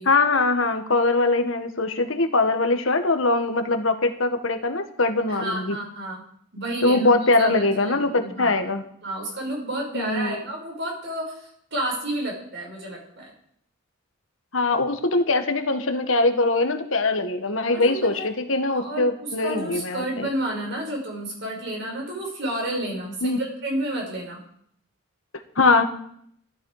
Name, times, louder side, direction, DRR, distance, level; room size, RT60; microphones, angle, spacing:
voice 1, 0.0-5.8 6.8-8.8 9.9-10.4 14.5-20.3 23.2-23.4 25.5-25.8, left 2 dB, 65° left, 7 dB, 1.5 m, -22 dB
voice 2, 5.3-6.2 6.5-7.1 7.4-8.6 9.0-13.2 17.7-18.3 18.7-24.4, right 1 dB, 55° right, -1 dB, 5.6 m, -31 dB
15.5 x 13.5 x 4.9 m, 0.68 s
head